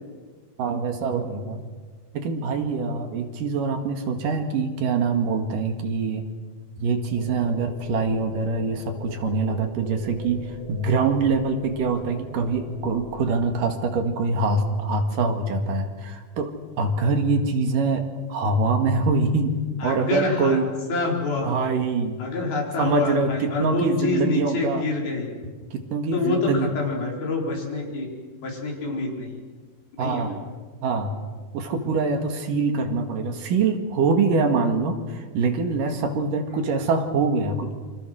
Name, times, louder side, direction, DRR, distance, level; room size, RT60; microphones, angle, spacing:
voice 1, 0.6-1.6 2.1-6.3 6.8-19.5 19.8-20.7 21.4-22.2 22.8-24.8 25.7-26.7 30.0-30.4 30.8-31.2 31.5-37.8, right 4 dB, 65° right, 5 dB, 3.5 m, -24 dB
sound 1, 7.1-13.7, right 2 dB, 15° right, 1.1 m, -41 dB
voice 2, 19.8-20.6 20.9-21.5 22.2-25.3 26.1-28.1 28.4-29.4 30.0-30.3, left 3 dB, 80° left, -1 dB, 6.2 m, -26 dB
29.0 x 25.5 x 6.4 m, 1.4 s
omnidirectional pair, 4.2 m